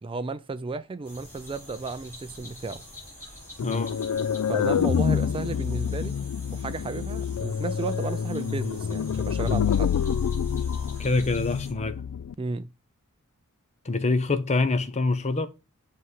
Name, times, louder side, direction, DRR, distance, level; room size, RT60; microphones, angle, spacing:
voice 1, 0.0-2.8 4.5-6.2 6.5-9.9 12.4-12.7, right 3 dB, 25° right, 0.4 m, -33 dB
sound 1, 1.0-11.7, left 1 dB, 10° left, 4.6 m, -46 dB
sound 2, 3.6-12.3, left 7 dB, 75° left, 0.4 m, -27 dB
voice 2, 3.6-4.0 11.0-12.0 13.8-15.5, left 3 dB, 30° left, 0.7 m, -25 dB
7.7 x 3.2 x 5.5 m
head